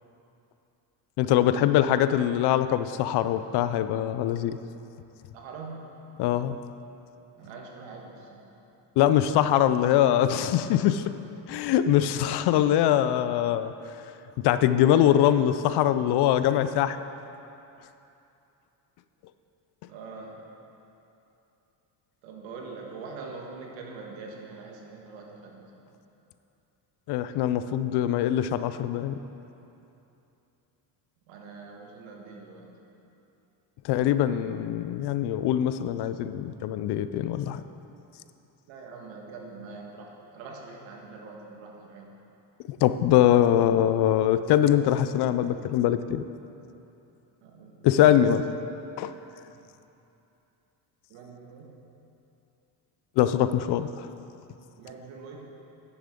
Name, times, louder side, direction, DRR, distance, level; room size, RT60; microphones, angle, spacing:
voice 1, 1.2-4.6 6.2-6.6 9.0-11.0 11.5-13.7 14.4-17.0 27.1-29.2 33.8-37.6 42.7-46.3 47.8-48.4 49.0-49.1 53.2-53.9, left 11 dB, 60° left, 11 dB, 0.5 m, -23 dB
voice 2, 5.3-5.9 7.4-8.4 19.9-20.4 22.2-25.8 31.3-32.7 38.7-42.1 47.4-47.9 51.1-51.7 54.8-55.5, right 4 dB, 80° right, 0 dB, 1.5 m, -43 dB
10.5 x 7.2 x 3.7 m, 2.8 s
cardioid pair, 95°, 45 cm